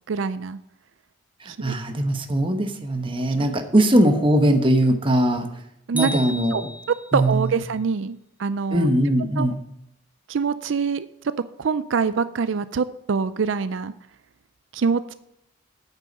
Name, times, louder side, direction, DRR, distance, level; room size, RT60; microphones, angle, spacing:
voice 1, 0.1-0.6 1.5-1.7 5.9-6.1 6.5-6.6 7.1-8.9 9.4-9.5 10.3-11.1 11.6-13.9 14.7-15.1, right 5 dB, 70° right, 14 dB, 0.4 m, -24 dB
voice 2, 1.4-5.5 5.9-6.7 7.1-7.6 8.7-9.6, right 1 dB, 25° right, 5 dB, 1.0 m, -20 dB
sound 1, 6.0-7.3, equal, 10° right, 0.7 m, -33 dB
9.3 x 8.2 x 5.4 m, 0.78 s
head